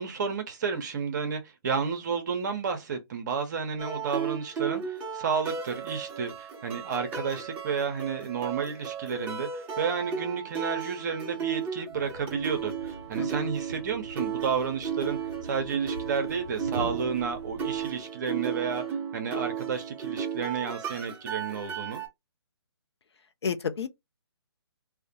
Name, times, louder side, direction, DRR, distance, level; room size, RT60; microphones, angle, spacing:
voice 1, 0.0-22.0, right 6 dB, 45° right, 0.7 m, -31 dB
sound 1, 3.8-22.1, right 7 dB, 15° right, 0.6 m, -34 dB
Thump thud, 11.9-18.1, right 2 dB, 90° right, 0.5 m, -44 dB
voice 2, 13.2-13.5 23.4-23.9, left 6 dB, 75° left, 0.6 m, -31 dB
2.4 x 2.2 x 2.7 m
hypercardioid pair, 150°, 14 cm